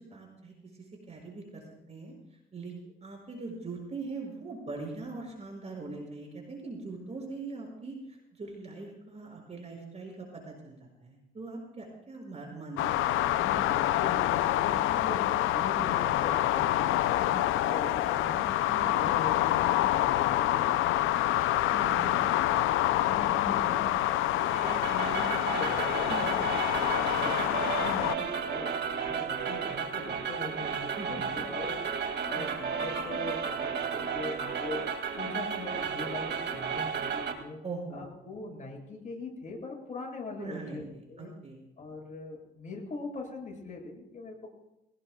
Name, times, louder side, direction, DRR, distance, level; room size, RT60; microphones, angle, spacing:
voice 1, 0.1-0.5 1.1-1.6 1.9-2.1 2.5-2.7 3.0-8.0 8.3-13.2 16.9-17.0 18.7-19.0 21.7-22.3 26.1-26.3 31.0-31.2 32.3-32.5 37.6-38.1 40.4-41.6, right 3 dB, 35° right, 0 dB, 6.1 m, -41 dB
sound 1, 12.8-28.2, left 14 dB, 85° left, 0.5 m, -27 dB
voice 2, 13.2-18.6 18.9-22.2 22.9-24.0 24.3-26.5 26.9-31.8 32.3-34.9 35.2-37.6 37.9-41.3 41.8-44.5, left 3 dB, 40° left, -1 dB, 7.3 m, -41 dB
sound 2, 24.5-37.3, right 6 dB, 60° right, 2.2 m, -33 dB
22.5 x 18.5 x 2.3 m, 0.89 s
cardioid pair, 90°, 20 cm